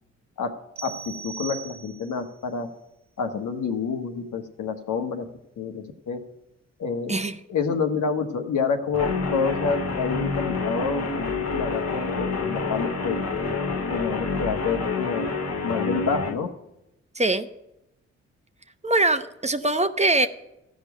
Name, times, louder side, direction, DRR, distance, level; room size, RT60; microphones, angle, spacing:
voice 1, 0.8-2.7 3.2-5.3 5.6-6.2 6.8-7.2 7.5-13.2 13.9-15.3 15.6-16.5, left 5 dB, 70° left, 5 dB, 1.4 m, -28 dB
sound 1, 0.8-2.3, right 7 dB, 65° right, 1.2 m, -39 dB
Guitar, 8.9-16.4, left 3 dB, 55° left, 1.7 m, -28 dB
voice 2, 17.1-17.5 18.8-20.3, right 2 dB, 20° right, 9 dB, 0.9 m, -22 dB
14.0 x 5.2 x 9.2 m, 0.89 s
supercardioid pair, 45°, 31 cm